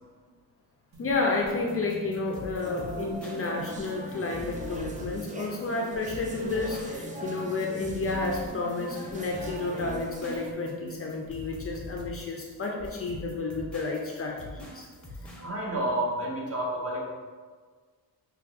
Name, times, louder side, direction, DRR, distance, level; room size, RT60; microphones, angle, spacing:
sound 1, 0.9-11.6, equal, 65° right, 1.2 m, -47 dB
voice 1, 1.0-14.9, left 3 dB, 35° left, 0 dB, 0.5 m, -31 dB
sound 2, 1.5-15.5, left 1 dB, 5° left, 0.9 m, -44 dB
sound 3, 2.6-10.5, right 2 dB, 20° right, 0.5 m, -40 dB
voice 2, 15.2-17.0, right 1 dB, 35° right, -4 dB, 1.4 m, -31 dB
5.9 x 3.1 x 2.5 m, 1.5 s
cardioid pair, 105°, 41 cm